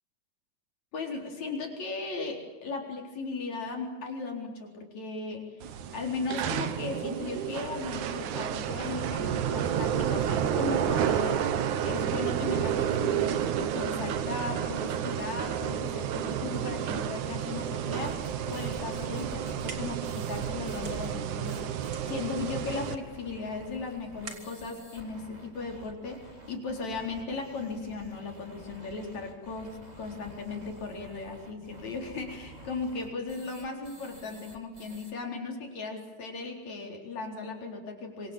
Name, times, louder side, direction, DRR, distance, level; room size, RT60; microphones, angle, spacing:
voice 1, 0.9-5.6 5.9-11.4 11.8-38.3, left 4 dB, 65° left, 2 dB, 5.4 m, -37 dB
sound 1, 5.6-22.9, right 9 dB, 90° right, 2.7 m, -31 dB
sound 2, 17.5-35.1, right 1 dB, 15° right, 3.0 m, -49 dB
sound 3, 19.3-26.1, right 3 dB, 40° right, 3.7 m, -50 dB
25.5 x 25.5 x 7.5 m, 1.2 s
omnidirectional pair, 3.4 m